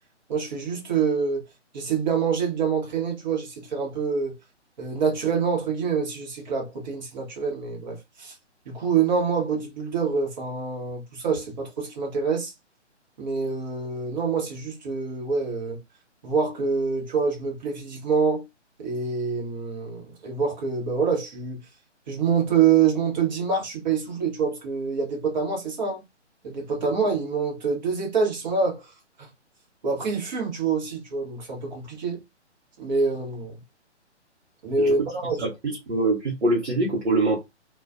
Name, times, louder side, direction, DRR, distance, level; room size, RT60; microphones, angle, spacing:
voice 1, 0.3-1.4 1.7-4.4 4.8-8.3 8.7-12.5 13.2-15.8 16.2-18.4 18.8-21.6 22.1-26.0 26.4-28.9 29.8-32.2 32.8-33.6 34.6-35.4, right 5 dB, 40° right, 1.0 m, -26 dB
voice 2, 35.4-37.4, right 2 dB, 70° right, 1.0 m, -24 dB
2.4 x 2.3 x 2.4 m
figure-of-eight pair, 135°, 36 cm